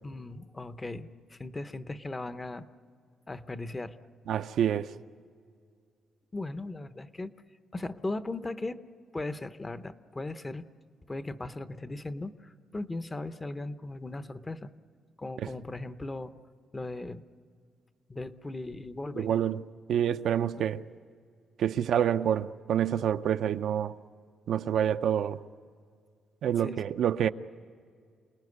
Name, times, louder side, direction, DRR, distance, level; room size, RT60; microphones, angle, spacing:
voice 1, 0.0-2.7 3.3-4.0 6.3-7.3 7.7-8.8 9.1-10.6 11.1-14.7 15.2-16.3 16.7-17.2 18.1-19.3 26.6-26.8, left 2 dB, 15° left, 0.7 m, -38 dB
voice 2, 4.3-4.9 19.2-19.6 19.9-20.8 21.6-23.9 24.5-25.4 26.4-27.3, right 9 dB, 65° right, 0.6 m, -27 dB
28.5 x 19.0 x 9.6 m
cardioid pair, 170°, 0 cm